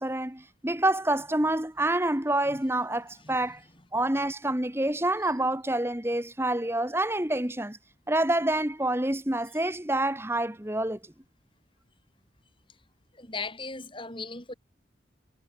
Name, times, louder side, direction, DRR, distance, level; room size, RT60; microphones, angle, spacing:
voice 1, 0.0-3.6 3.9-7.8 8.1-11.0, right 1 dB, 15° right, 1.6 m, -27 dB
voice 2, 13.2-14.5, left 3 dB, 25° left, 8.0 m, -37 dB
head